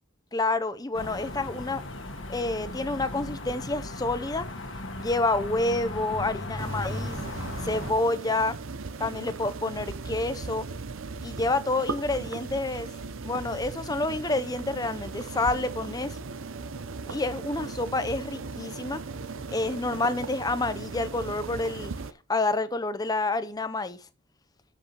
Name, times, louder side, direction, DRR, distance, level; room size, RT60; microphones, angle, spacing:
voice 1, 0.3-1.8 2.3-4.5 5.0-7.2 7.6-8.6 9.0-10.7 11.2-12.9 13.2-16.2 17.1-19.0 19.5-21.9 22.3-24.0, left 2 dB, 20° left, 0.5 m, -28 dB
sound 1, 0.9-7.9, left 1 dB, 65° left, 1.6 m, -36 dB
sound 2, 6.6-22.1, right 4 dB, 70° right, 0.7 m, -38 dB
13.0 x 6.0 x 2.9 m
head